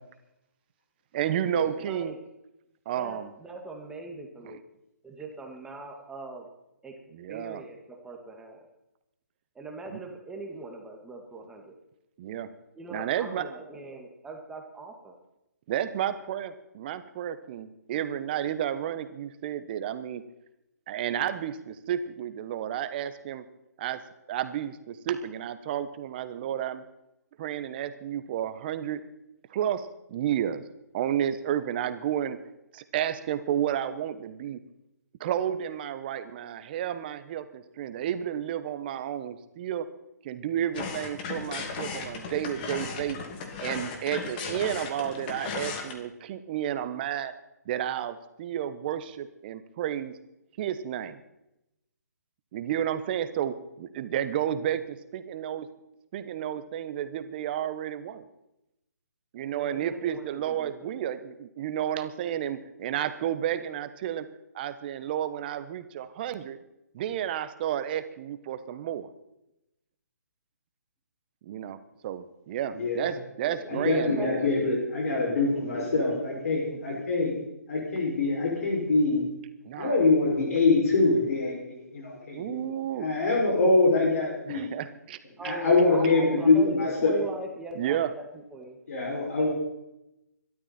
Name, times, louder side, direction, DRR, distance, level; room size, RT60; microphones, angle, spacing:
voice 1, 1.1-2.1 2.8-3.3 4.4-4.6 7.1-7.6 9.9-10.0 12.2-12.5 12.9-13.5 15.7-20.2 20.9-23.4 23.8-26.8 27.4-29.0 29.5-30.6 30.9-32.4 32.7-34.6 35.2-39.9 40.2-43.2 43.6-47.3 47.6-50.2 50.6-51.2 52.5-55.7 56.1-58.2 59.3-64.3 64.5-66.6 66.9-69.1 71.4-74.4 79.6-80.0 82.3-83.1 84.5-85.2 87.7-88.1, right 10 dB, 35° right, 12 dB, 1.2 m, -31 dB
voice 2, 1.8-2.2 3.0-4.6 5.0-6.5 6.8-6.9 7.3-8.7 9.6-11.7 12.8-15.1 59.5-61.0 73.4-74.8 75.1-77.0 85.4-88.8 89.4-89.5, right 2 dB, 5° right, 2 dB, 1.9 m, -41 dB
sound 1, 40.7-45.9, left 4 dB, 30° left, 2.4 m, -36 dB
voice 3, 73.7-77.4 77.7-79.2 79.8-82.6 83.0-84.7 85.4-87.2 88.9-89.5, left 3 dB, 60° left, -2 dB, 6.1 m, -24 dB
22.5 x 12.5 x 4.4 m, 0.87 s
hypercardioid pair, 145°, 9 cm